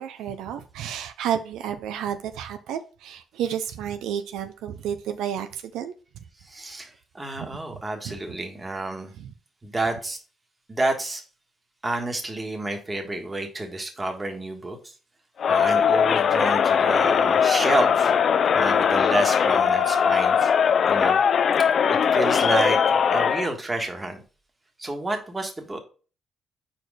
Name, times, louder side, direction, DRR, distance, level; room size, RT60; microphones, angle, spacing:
voice 1, 0.0-5.9 7.4-7.5 8.0-8.2 9.2-9.3, right 9 dB, 90° right, 0.5 m, -31 dB
voice 2, 6.5-6.9 7.1-9.1 9.6-10.2 10.7-11.2 11.8-14.9 15.5-18.1 18.5-20.5 20.9-21.2 21.9-22.8 23.1-24.2 24.8-25.8, right 2 dB, 20° right, 1.4 m, -29 dB
Crowd, 15.4-23.5, left 7 dB, 55° left, 0.4 m, -20 dB
4.6 x 4.3 x 4.9 m
cardioid pair, 90°, 0 cm